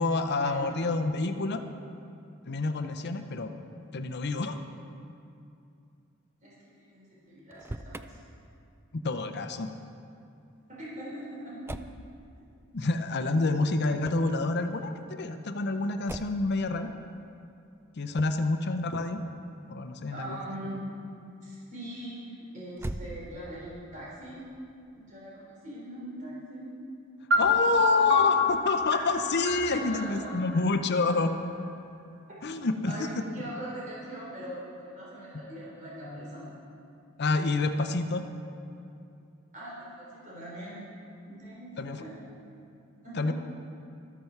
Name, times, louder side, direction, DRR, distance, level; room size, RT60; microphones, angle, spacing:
voice 1, 0.0-1.6 2.5-3.5 3.9-4.6 8.9-9.7 12.7-16.9 18.0-19.2 19.7-20.4 27.4-31.3 32.4-33.2 37.2-38.2 41.8-42.0 43.2-43.3, left 3 dB, 55° left, 8 dB, 0.7 m, -28 dB
voice 2, 6.4-8.2 10.7-11.6 20.1-21.0 21.4-24.4 25.1-26.7 27.3-27.6 28.0-28.1 29.7-30.3 32.8-36.5 39.5-40.8 41.3-41.7 41.9-42.2 43.0-43.3, right 1 dB, 40° right, -7 dB, 3.9 m, -41 dB
Motor vehicle (road), 7.4-8.1 11.6-12.0 14.0-14.4 16.1-16.5 18.1-18.5 22.7-23.6, right 1 dB, 10° right, 0.4 m, -39 dB
sound 1, 27.3-31.1, left 3 dB, 80° right, 2.6 m, -28 dB
14.5 x 13.0 x 4.6 m, 2.6 s
head